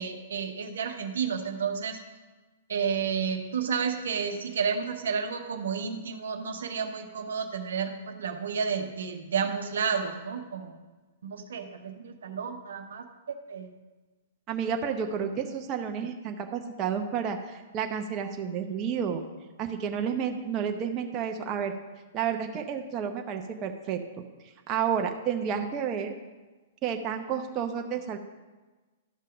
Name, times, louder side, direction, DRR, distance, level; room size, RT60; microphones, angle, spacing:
voice 1, 0.0-2.0 2.7-10.8 11.2-13.0 13.5-13.7, right 6 dB, 70° right, 5 dB, 1.0 m, -31 dB
voice 2, 14.5-19.2 19.6-21.7 22.1-24.0 24.7-26.1 26.8-28.2, right 7 dB, 30° right, 4 dB, 0.8 m, -30 dB
12.0 x 5.6 x 5.1 m, 1.2 s
hypercardioid pair, 115°, 0 cm